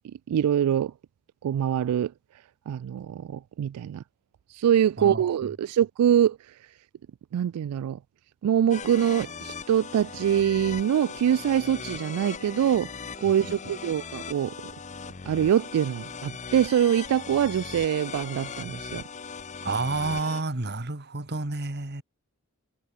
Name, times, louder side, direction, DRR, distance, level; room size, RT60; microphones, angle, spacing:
voice 1, 0.3-0.9 1.4-2.1 2.7-4.0 4.5-6.4 7.3-8.0 8.4-12.9 13.2-14.5 15.3-19.0, right 9 dB, 85° right, 0.3 m, -24 dB
sound 1, 8.7-20.4, left 5 dB, 35° left, 0.8 m, -39 dB
voice 2, 19.6-22.0, right 3 dB, 45° right, 1.8 m, -30 dB
head